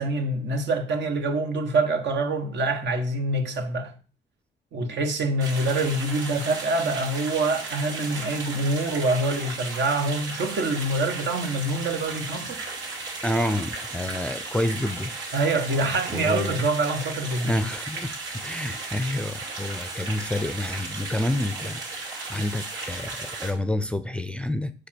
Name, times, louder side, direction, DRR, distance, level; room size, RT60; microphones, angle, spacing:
voice 1, 0.0-3.9 4.7-12.6 15.3-17.5, right 2 dB, 60° right, 1.5 m, -25 dB
sound 1, 5.4-23.5, right 3 dB, 80° right, 3.0 m, -35 dB
voice 2, 13.2-15.2 16.1-16.7 17.4-24.7, left 1 dB, 5° left, 0.6 m, -29 dB
7.1 x 5.1 x 6.0 m
cardioid pair, 90°, 20 cm